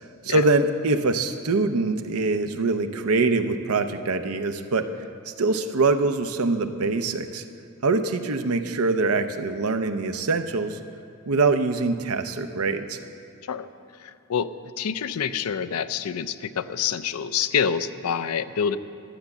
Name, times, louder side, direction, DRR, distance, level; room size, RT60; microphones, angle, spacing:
voice 1, 0.2-4.9 5.3-7.4 7.8-10.8 11.3-13.0, right 3 dB, 80° right, 9 dB, 0.7 m, -24 dB
voice 2, 14.0-18.8, left 7 dB, 90° left, 13 dB, 0.5 m, -27 dB
12.0 x 7.1 x 7.8 m, 2.5 s
head